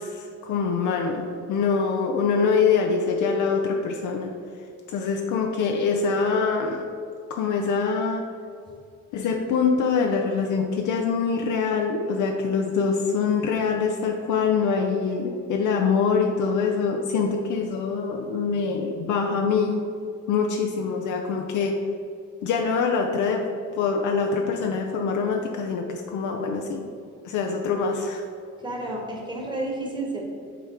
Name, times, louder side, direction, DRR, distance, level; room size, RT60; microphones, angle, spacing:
voice 1, 0.0-4.3 4.9-6.8 7.3-8.2 9.1-19.8 20.3-21.8 22.4-23.5 23.7-26.8 27.2-28.2, left 5 dB, 80° left, 2 dB, 0.6 m, -24 dB
voice 2, 28.6-30.2, right 2 dB, 15° right, -2 dB, 1.5 m, -31 dB
7.1 x 3.7 x 4.4 m, 2.4 s
cardioid pair, 90°, 30 cm